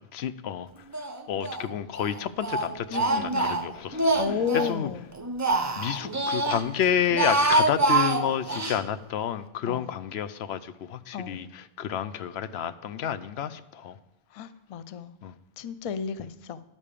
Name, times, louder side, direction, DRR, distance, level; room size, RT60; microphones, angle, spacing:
voice 1, 0.1-0.7 1.3-4.2 4.6-4.9 5.8-14.0 15.2-15.3, left 9 dB, 85° left, 13 dB, 0.8 m, -30 dB
Speech, 0.9-1.7 2.0-4.8 5.1-6.6 7.0-8.8, right 2 dB, 25° right, 0.5 m, -26 dB
voice 2, 2.9-3.5 4.1-5.1 9.7-9.9 11.1-11.5 14.3-15.1 15.6-16.6, left 7 dB, 45° left, 14 dB, 0.4 m, -33 dB
11.0 x 5.3 x 6.6 m, 0.90 s
omnidirectional pair, 1.0 m